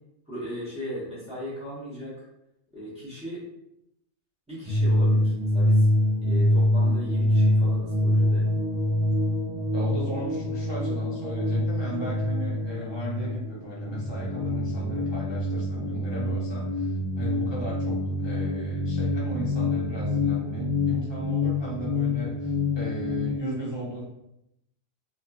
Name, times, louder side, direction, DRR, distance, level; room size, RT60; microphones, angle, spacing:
voice 1, 0.3-2.2 2.7-3.4 4.5-5.9 6.2-8.5, equal, 5° right, -10 dB, 1.0 m, -38 dB
sound 1, 4.7-23.4, left 1 dB, 55° right, 0.9 m, -25 dB
voice 2, 9.7-24.0, equal, 25° left, -5 dB, 0.7 m, -36 dB
2.6 x 2.6 x 2.3 m, 0.82 s
omnidirectional pair, 1.2 m